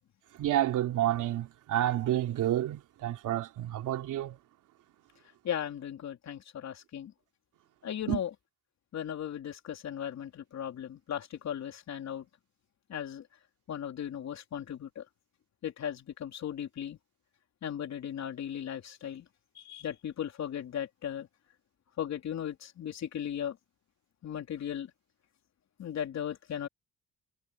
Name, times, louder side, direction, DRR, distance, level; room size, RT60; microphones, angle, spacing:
voice 1, 0.4-4.4 8.1-8.2, right 12 dB, 80° right, 3.3 m, -29 dB
voice 2, 5.4-7.1 7.8-8.3 8.9-12.3 12.9-13.3 13.7-15.0 15.6-17.0 17.6-19.3 19.5-21.3 22.0-23.6 24.2-24.9 25.8-26.7, left 9 dB, 60° left, 3.4 m, -37 dB
cardioid pair, 90°, 30 cm